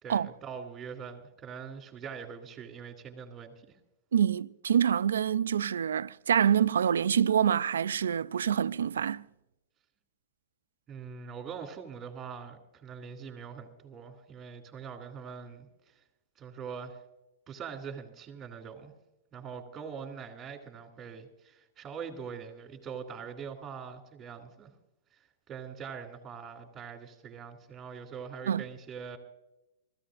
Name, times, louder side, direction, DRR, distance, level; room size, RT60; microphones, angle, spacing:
voice 1, 0.0-3.8 10.9-15.9 16.4-17.0 17.5-18.9 19.3-24.7 25.5-29.2, right 6 dB, 20° right, 2.6 m, -43 dB
voice 2, 4.1-9.2 28.5-28.6, right 8 dB, 85° right, 0.4 m, -26 dB
24.0 x 14.5 x 2.5 m
hypercardioid pair, 125°, 0 cm